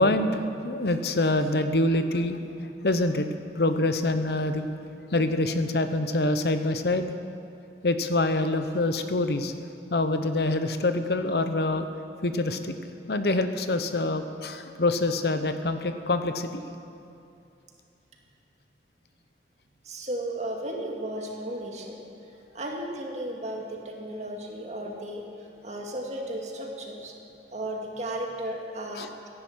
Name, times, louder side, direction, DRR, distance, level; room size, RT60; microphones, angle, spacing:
voice 1, 0.0-2.4 2.8-3.3 3.5-4.7 5.1-7.1 7.8-9.5 9.9-11.9 12.2-12.7 13.1-16.6 29.0-29.1, left 2 dB, 65° left, 8 dB, 0.9 m, -25 dB
voice 2, 19.8-22.0 22.5-25.3 25.6-27.1 27.5-29.1, right 1 dB, 40° right, 0 dB, 2.1 m, -34 dB
15.5 x 11.0 x 7.9 m, 2.7 s
head